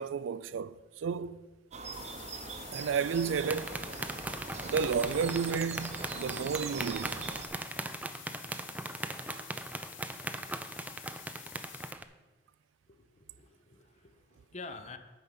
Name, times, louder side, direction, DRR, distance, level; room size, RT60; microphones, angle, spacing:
voice 1, 0.0-1.4 2.7-3.8 4.6-7.2 9.3-9.4, right 6 dB, 85° right, 0.4 m, -32 dB
sound 1, 1.7-7.5, right 4 dB, 35° right, 0.8 m, -42 dB
sound 2, 1.9-11.9, left 12 dB, 80° left, 0.6 m, -50 dB
sound 3, 3.4-12.0, right 2 dB, 10° right, 0.4 m, -39 dB
voice 2, 12.9-15.0, left 3 dB, 40° left, 0.7 m, -48 dB
9.1 x 5.2 x 5.9 m
head